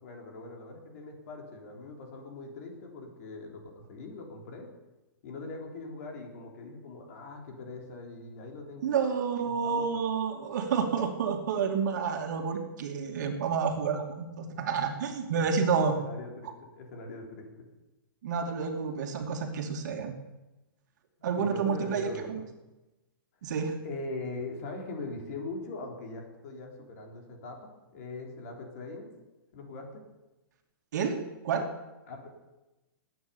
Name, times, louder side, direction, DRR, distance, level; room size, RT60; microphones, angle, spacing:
voice 1, 0.0-4.7 5.2-8.9 9.4-10.0 15.8-17.7 21.4-22.4 23.8-29.1 29.5-30.0 32.1-32.5, left 3 dB, 45° left, 2 dB, 3.6 m, -41 dB
voice 2, 8.8-16.0 18.2-20.1 21.2-22.4 23.4-23.7 30.9-31.2 31.4-31.7, right 6 dB, 55° right, 4 dB, 2.5 m, -29 dB
19.5 x 9.4 x 7.1 m, 1.0 s
hypercardioid pair, 165°, 12 cm